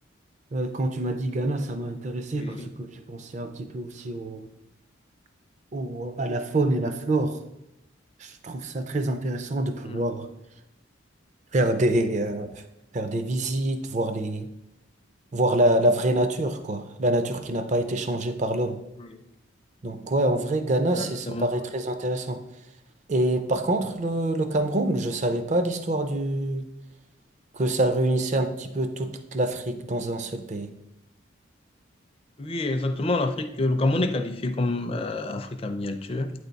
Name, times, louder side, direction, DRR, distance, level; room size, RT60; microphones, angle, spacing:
voice 1, 0.5-4.5 5.7-7.4 8.2-10.3 11.5-12.5 12.9-14.5 15.3-18.8 19.8-22.4 23.1-26.7 27.5-30.7, right 1 dB, 35° right, 8 dB, 0.4 m, -26 dB
voice 2, 20.9-21.5 32.4-36.3, left 2 dB, 30° left, 7 dB, 0.4 m, -28 dB
8.7 x 3.4 x 4.0 m, 0.87 s
head